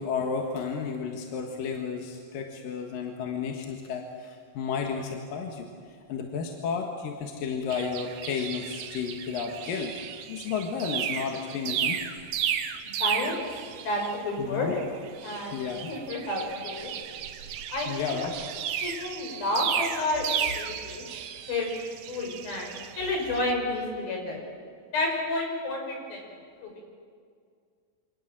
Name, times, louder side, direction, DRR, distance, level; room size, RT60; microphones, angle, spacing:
voice 1, 0.0-12.1 14.4-14.7 15.5-15.9 17.9-18.3, left 6 dB, 75° left, 2 dB, 3.3 m, -32 dB
sound 1, 7.7-14.4 14.7-23.5, right 9 dB, 85° right, 3.0 m, -34 dB
voice 2, 12.8-13.4 13.8-14.9 15.2-16.9 17.7-18.2 18.8-21.0 21.5-24.4 24.9-26.2 26.6-26.7, left 2 dB, 90° left, 1 dB, 7.4 m, -30 dB
28.0 x 26.0 x 7.6 m, 2.2 s
omnidirectional pair, 4.1 m